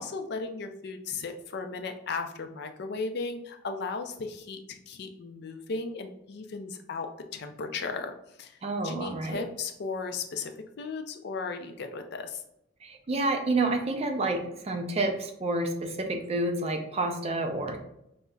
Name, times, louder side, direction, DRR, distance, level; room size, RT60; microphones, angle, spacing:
voice 1, 0.0-8.1 8.4-8.6 8.8-10.5 10.8-12.4, left 4 dB, 60° left, 6 dB, 0.4 m, -36 dB
voice 2, 8.6-9.5 12.8-17.8, right 2 dB, 35° right, 5 dB, 0.4 m, -29 dB
5.1 x 2.1 x 2.3 m, 0.79 s
head